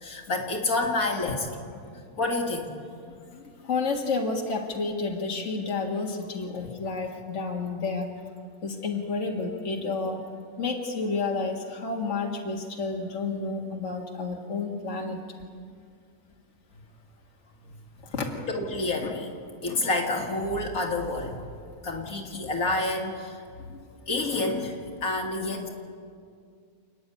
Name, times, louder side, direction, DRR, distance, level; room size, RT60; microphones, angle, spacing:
voice 1, 0.0-1.5 2.2-2.8 18.5-21.4 21.8-23.4 24.1-24.8 25.0-25.7, left 2 dB, 70° left, 1 dB, 2.4 m, -28 dB
voice 2, 3.7-8.0 8.6-10.2 10.6-15.2 18.1-18.3, left 4 dB, 50° left, -1 dB, 2.1 m, -30 dB
29.0 x 10.0 x 9.6 m, 2.2 s
omnidirectional pair, 1.6 m